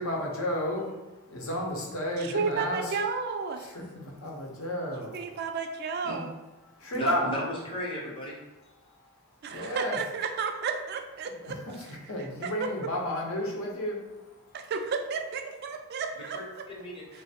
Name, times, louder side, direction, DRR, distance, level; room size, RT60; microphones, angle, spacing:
voice 1, 0.0-3.0 3.6-5.6 6.6-7.3 8.6-10.0 11.2-14.7 17.1-17.2, left 1 dB, 80° left, -1 dB, 0.8 m, -33 dB
voice 2, 2.3-3.7 5.1-6.3 9.4-11.6 12.4-12.7 14.5-16.4, right 5 dB, 50° right, 5 dB, 0.3 m, -32 dB
voice 3, 6.9-8.4 16.3-17.0, equal, 25° left, -3 dB, 0.7 m, -35 dB
3.1 x 2.0 x 4.1 m, 1.1 s
head